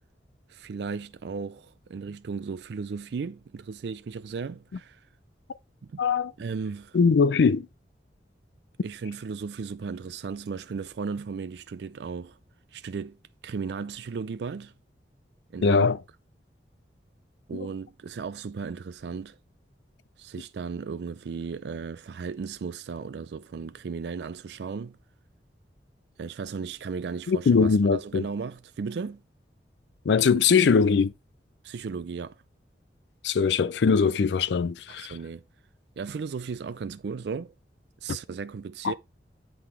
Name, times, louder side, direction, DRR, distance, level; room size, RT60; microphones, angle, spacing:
voice 1, 0.5-5.1 5.8-6.0 6.4-7.0 8.8-12.4 12.7-13.2 13.4-14.7 15.5-15.8 17.5-19.4 20.2-25.0 26.2-29.2 31.6-32.4 34.9-35.4 36.0-37.5 38.0-38.9, right 5 dB, 70° right, 0.4 m, -35 dB
voice 2, 6.0-6.3 6.9-7.7 15.6-16.0 27.3-28.3 30.1-31.1 33.2-35.1 38.8-38.9, left 5 dB, 75° left, 0.4 m, -21 dB
8.4 x 3.8 x 4.4 m
head